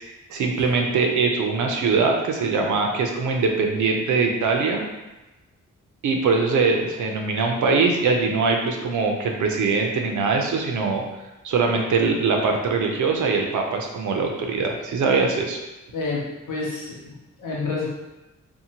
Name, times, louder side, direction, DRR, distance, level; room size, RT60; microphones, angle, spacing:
voice 1, 0.3-4.8 6.0-11.0 11.4-15.6, right 4 dB, 70° right, 2 dB, 0.5 m, -22 dB
voice 2, 15.9-17.9, left 3 dB, 85° left, -4 dB, 0.8 m, -29 dB
2.7 x 2.1 x 2.8 m, 1.0 s
wide cardioid pair, 130°, 31 cm